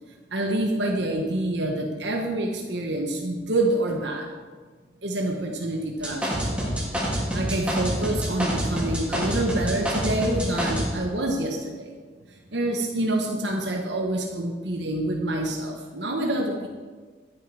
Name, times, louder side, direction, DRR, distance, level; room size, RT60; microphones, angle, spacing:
voice 1, 0.3-4.3 5.0-6.7 7.3-11.9 12.5-16.7, right 1 dB, 90° right, 1 dB, 1.3 m, -27 dB
sound 1, 6.0-10.9, equal, 5° right, 3.3 m, -26 dB
13.5 x 9.2 x 4.9 m, 1.5 s
head